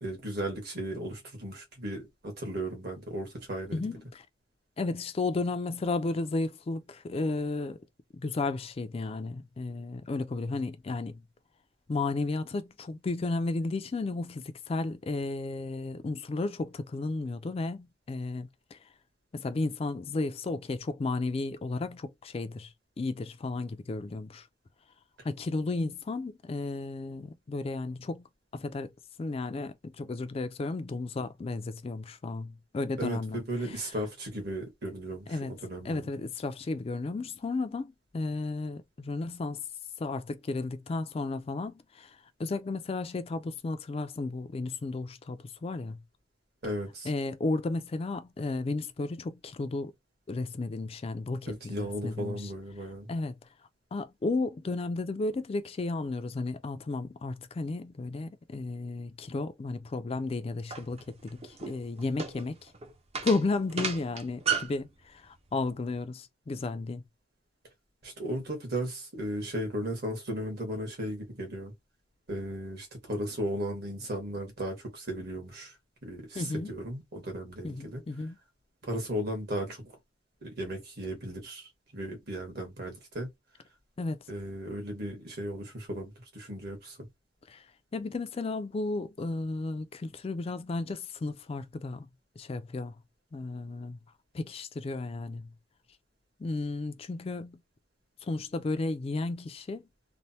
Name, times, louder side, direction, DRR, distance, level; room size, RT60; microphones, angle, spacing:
voice 1, 0.0-3.8 33.0-36.1 46.6-47.1 51.5-53.1 68.0-71.7 72.3-75.7 76.0-78.0 78.8-79.9 80.4-83.3 84.3-87.1, right 1 dB, 60° right, 1.4 m, -36 dB
voice 2, 3.7-4.2 4.8-7.8 8.1-11.2 11.9-18.8 19.3-24.5 25.2-28.3 28.5-28.9 29.2-33.4 33.7-33.8 35.3-35.5 35.8-39.6 40.0-46.0 47.0-49.9 50.3-52.5 53.1-53.4 53.9-62.7 63.2-67.0 76.4-76.7 77.6-78.4 84.0-84.2 87.5-87.6 87.9-92.1 92.4-92.9 93.3-94.0 94.3-95.5 96.4-97.6 98.2-99.9, left 3 dB, 30° left, 0.3 m, -33 dB
sound 1, 60.7-64.8, right 6 dB, 35° right, 0.5 m, -33 dB
3.1 x 2.1 x 2.7 m
head